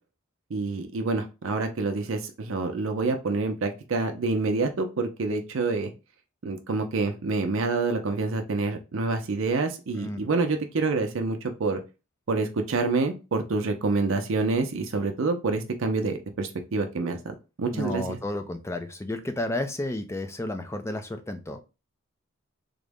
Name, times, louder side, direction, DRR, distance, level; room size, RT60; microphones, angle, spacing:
voice 1, 0.5-5.9 6.4-11.8 12.3-18.2, right 3 dB, 65° right, 6 dB, 0.5 m, -27 dB
voice 2, 17.7-21.6, left 1 dB, 10° left, 7 dB, 0.3 m, -32 dB
3.7 x 2.0 x 3.4 m, 0.29 s
head